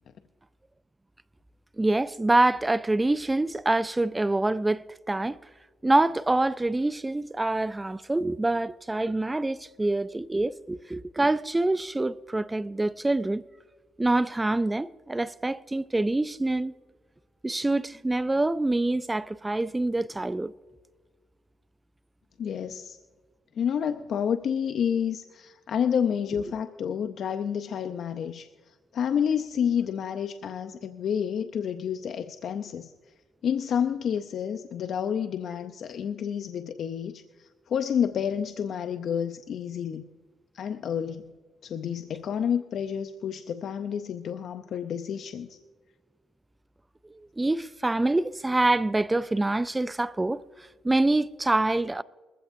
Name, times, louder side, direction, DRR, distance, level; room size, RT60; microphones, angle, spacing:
voice 1, 1.8-5.4 5.8-13.4 14.0-16.7 17.4-20.5 47.4-52.0, right 2 dB, 15° right, 0.3 m, -26 dB
voice 2, 22.4-23.0 23.6-32.9 33.4-40.0 40.5-41.2 41.6-45.6, left 8 dB, 65° left, 0.6 m, -29 dB
21.5 x 15.5 x 2.6 m
cardioid pair, 90°, 0 cm